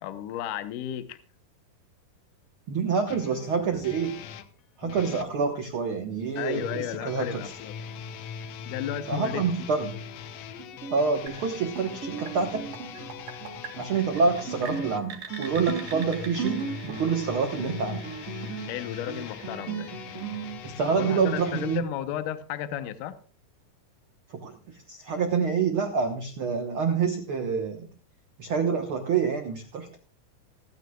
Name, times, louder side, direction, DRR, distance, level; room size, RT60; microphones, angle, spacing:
voice 1, 0.0-1.2 6.4-7.7 8.7-9.4 18.7-19.9 20.9-23.2, left 11 dB, 75° left, 11 dB, 2.2 m, -33 dB
voice 2, 2.7-4.2 4.8-7.4 9.1-9.9 10.9-12.7 13.8-18.0 20.6-21.8 24.3-27.9 28.4-30.0, right 5 dB, 85° right, 6 dB, 1.1 m, -27 dB
sound 1, 3.1-5.3 6.3-21.8, left 7 dB, 90° left, 1.4 m, -41 dB
Guitar, 10.6-20.6, right 5 dB, 35° right, 1.3 m, -38 dB
sound 2, 11.3-21.1, right 7 dB, 55° right, 2.7 m, -46 dB
26.5 x 9.5 x 2.3 m, 0.38 s
omnidirectional pair, 4.2 m